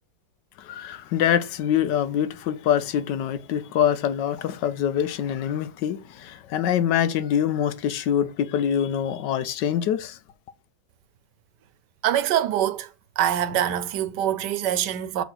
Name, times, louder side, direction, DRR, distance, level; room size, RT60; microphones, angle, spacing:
voice 1, 0.6-10.2, left 9 dB, 90° left, 1.4 m, -25 dB
voice 2, 12.0-12.9 13.2-15.2, right 11 dB, 80° right, 1.3 m, -24 dB
6.9 x 4.1 x 6.2 m
omnidirectional pair, 1.8 m